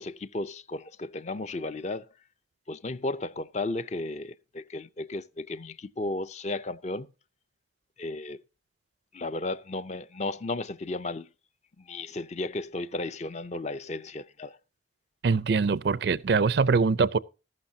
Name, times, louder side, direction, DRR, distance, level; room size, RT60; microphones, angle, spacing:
voice 1, 0.0-2.1 2.7-7.1 8.0-8.4 9.1-11.3 11.8-14.6, left 2 dB, 40° left, 0.5 m, -34 dB
voice 2, 15.2-17.2, right 4 dB, 60° right, 0.4 m, -23 dB
14.0 x 12.0 x 2.7 m
head